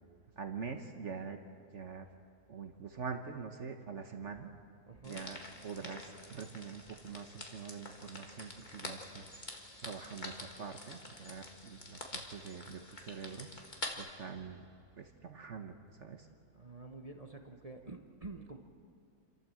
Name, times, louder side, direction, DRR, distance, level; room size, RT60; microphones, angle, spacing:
voice 1, 0.4-1.4 1.7-2.0 2.5-4.5 5.0-9.4 9.8-13.5 14.0-14.6 15.0-16.3, right 5 dB, 50° right, 5 dB, 1.2 m, -44 dB
voice 2, 4.9-5.3 16.5-18.6, right 3 dB, 30° right, 4 dB, 0.9 m, -48 dB
sound 1, 5.0-13.9, left 2 dB, 30° left, 1.8 m, -47 dB
28.0 x 13.5 x 7.6 m, 2.5 s
omnidirectional pair, 1.8 m